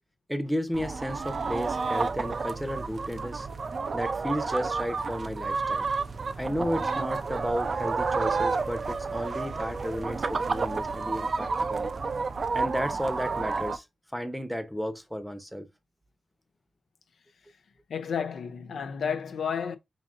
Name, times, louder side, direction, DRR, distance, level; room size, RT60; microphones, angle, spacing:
voice 1, 0.3-3.5 3.9-5.9 6.4-11.9 12.5-13.8 14.1-15.7, equal, ahead, 0.7 m, -33 dB
sound 1, 0.7-13.8, right 4 dB, 55° right, 0.4 m, -30 dB
voice 2, 17.9-19.8, left 7 dB, 85° left, 0.5 m, -31 dB
5.1 x 2.6 x 2.5 m
cardioid pair, 75°, 0 cm